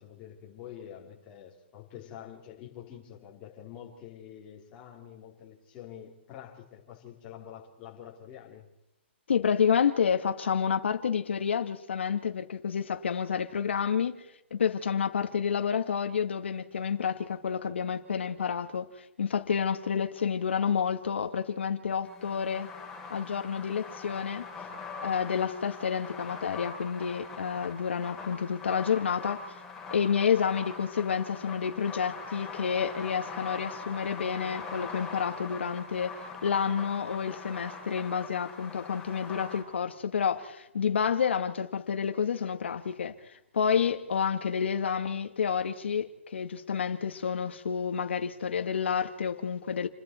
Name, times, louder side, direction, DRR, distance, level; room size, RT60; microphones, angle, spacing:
voice 1, 0.0-8.7, left 10 dB, 15° left, 3.5 m, -47 dB
voice 2, 9.3-14.3 14.5-22.7 23.1-24.4 25.0-29.6 29.9-49.9, left 7 dB, 70° left, 2.1 m, -29 dB
sound 1, 22.0-39.6, left 4 dB, ahead, 7.7 m, -42 dB
29.5 x 21.0 x 4.6 m
hypercardioid pair, 180°, 6 cm